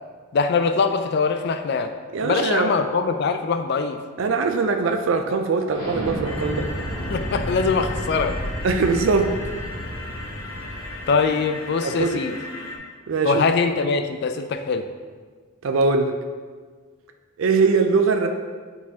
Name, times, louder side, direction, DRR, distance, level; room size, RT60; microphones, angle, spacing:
voice 1, 0.3-1.9 2.2-4.0 7.1-8.4 11.1-12.4 13.2-14.9, left 4 dB, 50° left, 8 dB, 0.3 m, -22 dB
voice 2, 2.1-2.8 4.2-6.7 8.6-9.3 11.8-12.2 13.1-13.4 15.6-16.1 17.4-18.3, right 4 dB, 65° right, 5 dB, 0.4 m, -21 dB
Explosion, 5.7-11.2, equal, 25° left, 1.8 m, -31 dB
sound 1, 6.2-12.8, left 2 dB, 70° left, 0.9 m, -36 dB
8.4 x 4.0 x 2.8 m, 1.5 s
head